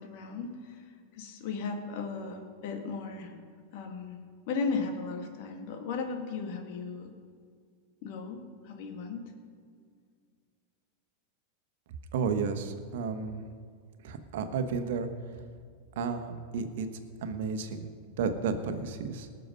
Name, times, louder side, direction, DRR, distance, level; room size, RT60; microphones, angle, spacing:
voice 1, 0.0-3.3 3.7-4.2 4.5-7.1 8.0-9.3, left 4 dB, 60° left, 4 dB, 2.0 m, -36 dB
voice 2, 12.1-13.4 14.0-15.1 15.9-16.9 17.2-17.9 18.2-19.3, right 5 dB, 70° right, 8 dB, 1.3 m, -32 dB
19.5 x 6.8 x 5.5 m, 2.1 s
hypercardioid pair, 105°, 0 cm